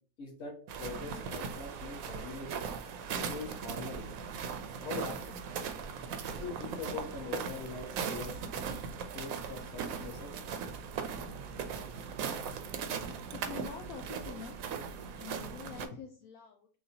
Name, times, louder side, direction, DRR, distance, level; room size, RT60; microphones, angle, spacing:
voice 1, 0.2-2.7 3.1-4.1 4.8-5.4 6.3-8.4 9.1-10.4 11.2-11.4, left 4 dB, 45° left, -1 dB, 1.4 m, -43 dB
sound 1, 0.7-15.9, right 6 dB, 65° right, 0.9 m, -39 dB
Fire, 0.7-15.9, right 3 dB, 80° right, 1.2 m, -54 dB
voice 2, 13.3-14.7 15.2-16.7, left 7 dB, 65° left, 2 dB, 1.0 m, -46 dB
6.3 x 2.4 x 2.7 m, 0.42 s
omnidirectional pair, 1.8 m